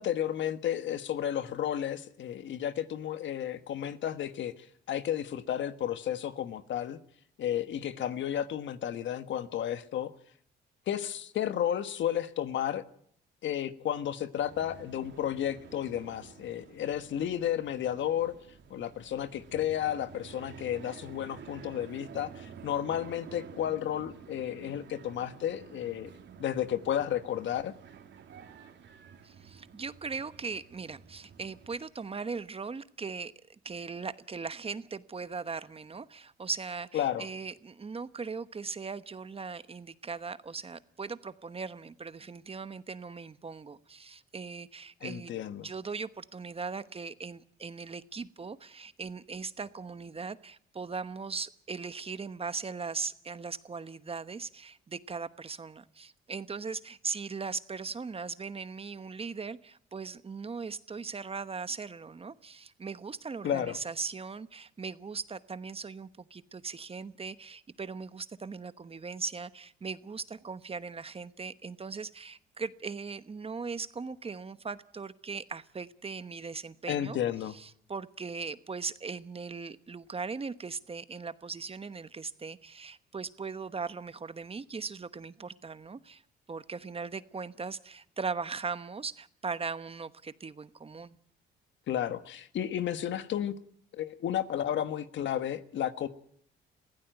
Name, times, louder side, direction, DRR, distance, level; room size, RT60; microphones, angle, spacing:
voice 1, 0.0-7.0 7.4-10.1 10.9-12.8 13.4-18.3 18.7-26.1 26.4-27.7 36.9-37.3 45.0-45.7 63.4-63.8 76.9-77.5 91.9-93.5 93.9-96.1, left 10 dB, 70° left, 11 dB, 1.4 m, -32 dB
sound 1, 14.3-31.9, right 7 dB, 65° right, 2.9 m, -51 dB
voice 2, 29.2-45.3 45.6-77.2 77.5-86.2 86.5-91.2, right 4 dB, 30° right, 13 dB, 1.1 m, -39 dB
22.0 x 16.0 x 9.1 m, 0.66 s
cardioid pair, 90°, 20 cm